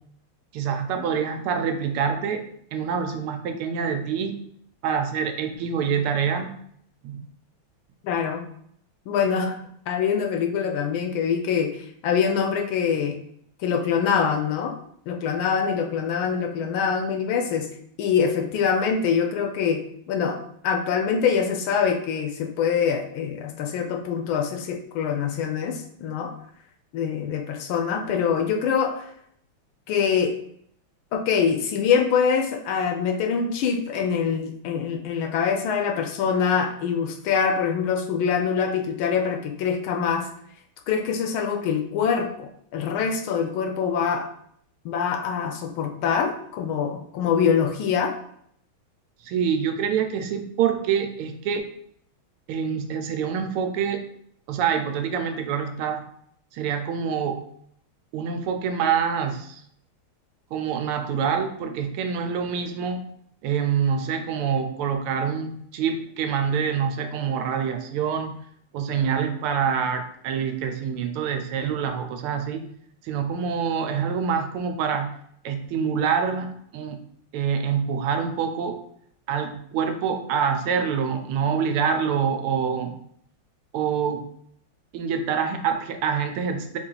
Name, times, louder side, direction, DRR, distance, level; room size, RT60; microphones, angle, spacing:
voice 1, 0.5-2.4 2.7-4.4 4.8-6.5 7.0-7.2 49.2-51.6 52.5-54.0 54.5-56.0 56.5-57.5 58.1-59.6 60.5-63.0 63.4-68.4 68.7-72.6 73.0-75.1 75.4-77.0 77.3-78.8 79.3-83.0 83.7-84.3 84.9-86.8, right 7 dB, 85° right, 6 dB, 1.5 m, -26 dB
voice 2, 8.0-8.5 9.1-9.6 9.9-13.2 13.6-14.8 15.1-17.7 18.0-19.8 20.1-20.4 20.6-26.3 26.9-29.1 29.9-30.3 31.1-40.3 40.9-44.3 44.8-48.1, left 6 dB, 75° left, 3 dB, 1.3 m, -24 dB
4.3 x 2.4 x 3.8 m, 0.67 s
omnidirectional pair, 2.4 m